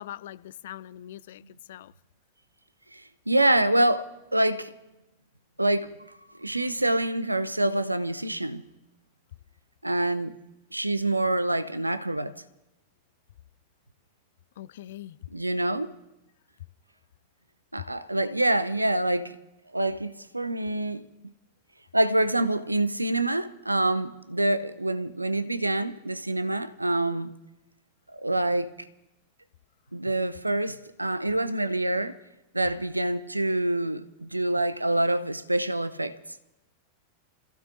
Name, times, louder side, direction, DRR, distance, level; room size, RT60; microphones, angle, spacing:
voice 1, 0.0-1.4 1.7-1.9 14.6-15.2, left 12 dB, 60° left, 0.4 m, -42 dB
voice 2, 2.9-4.7 5.6-5.9 6.4-8.6 9.8-10.3 10.7-12.3 15.3-15.9 17.7-19.4 19.7-21.0 21.9-27.3 28.1-28.9 29.9-32.2 32.5-36.2, right 1 dB, 85° right, 0.6 m, -26 dB
30.0 x 15.0 x 2.6 m
figure-of-eight pair, 90°, 0 cm